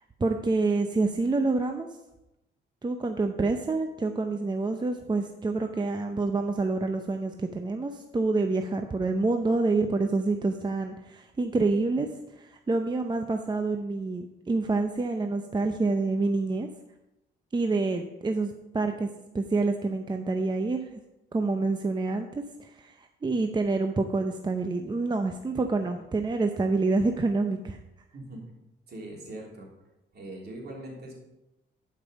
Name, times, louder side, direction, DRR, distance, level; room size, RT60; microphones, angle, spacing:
voice 1, 0.2-1.9 2.8-12.1 12.4-16.7 17.5-19.1 19.3-20.9 21.3-27.8, right 3 dB, 20° right, 5 dB, 0.7 m, -27 dB
voice 2, 28.1-28.4 28.9-29.7 30.1-31.2, right 1 dB, 55° right, -1 dB, 3.2 m, -41 dB
11.5 x 5.5 x 5.2 m, 0.92 s
cardioid pair, 90°, 20 cm